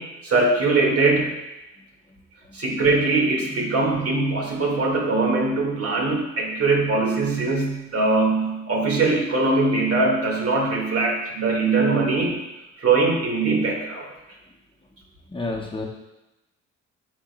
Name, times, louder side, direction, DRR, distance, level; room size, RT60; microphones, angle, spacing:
voice 1, 0.0-1.3 2.5-12.4 12.8-14.1, right 3 dB, 50° right, -1 dB, 1.8 m, -21 dB
voice 2, 15.3-15.9, left 2 dB, 15° left, -2 dB, 0.9 m, -29 dB
10.0 x 5.2 x 2.2 m, 0.97 s
cardioid pair, 90°, 30 cm